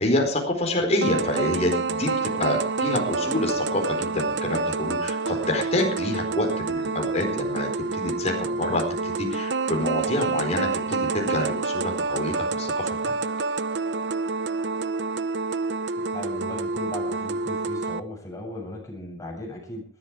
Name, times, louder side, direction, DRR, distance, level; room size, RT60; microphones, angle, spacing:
voice 1, 0.0-2.1 2.4-13.1, left 1 dB, 35° left, 2 dB, 4.5 m, -27 dB
sound 1, 1.0-18.0, right 4 dB, 65° right, 0.9 m, -28 dB
voice 2, 16.0-19.8, left 1 dB, 20° left, 0 dB, 7.5 m, -37 dB
19.5 x 13.5 x 4.8 m, 0.39 s
head